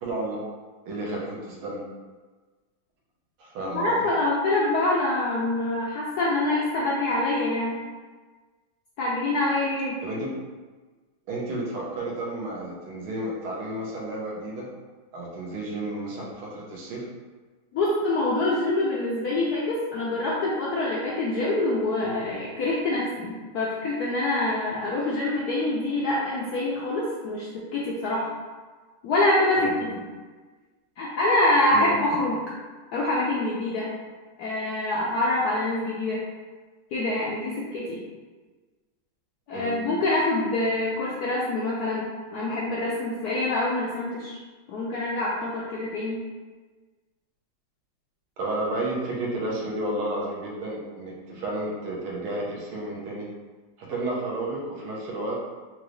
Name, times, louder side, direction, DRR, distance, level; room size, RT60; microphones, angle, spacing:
voice 1, 0.0-0.4 0.9-1.8 3.4-4.1 10.0-10.3 11.3-14.7 15.1-17.1 29.6-29.9 31.7-31.9 39.5-39.8 48.4-53.3 53.8-55.4, right 1 dB, 90° right, -3 dB, 1.8 m, -32 dB
voice 2, 3.7-7.7 9.0-9.9 17.7-28.3 29.0-30.0 31.0-32.4 32.9-33.9 34.4-36.2 36.9-38.0 39.5-44.4 44.7-46.2, left 2 dB, 75° left, -5 dB, 0.9 m, -25 dB
4.5 x 2.6 x 3.1 m, 1.4 s
omnidirectional pair, 2.3 m